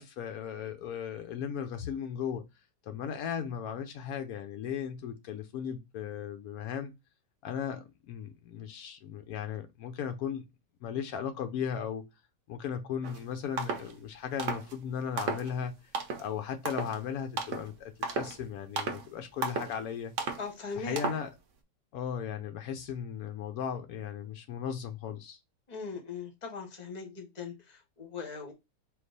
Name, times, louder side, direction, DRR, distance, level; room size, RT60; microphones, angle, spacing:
voice 1, 0.0-2.4 2.8-6.9 7.4-10.5 10.8-12.0 12.5-15.7 16.2-20.3 20.8-21.3 21.9-25.4, left 8 dB, 90° left, 0.8 m, -36 dB
sound 1, 13.0-13.2 13.6-13.9 14.4-14.7 15.2-15.5 15.9-16.3 16.7-17.0 17.4-17.7 18.0-18.4 18.8-19.1 19.4-19.8 20.2-20.4 21.0-21.3, right 4 dB, 65° right, 0.7 m, -34 dB
voice 2, 20.4-21.0 25.7-28.5, left 5 dB, 40° left, 0.5 m, -40 dB
4.4 x 2.4 x 3.9 m
omnidirectional pair, 2.1 m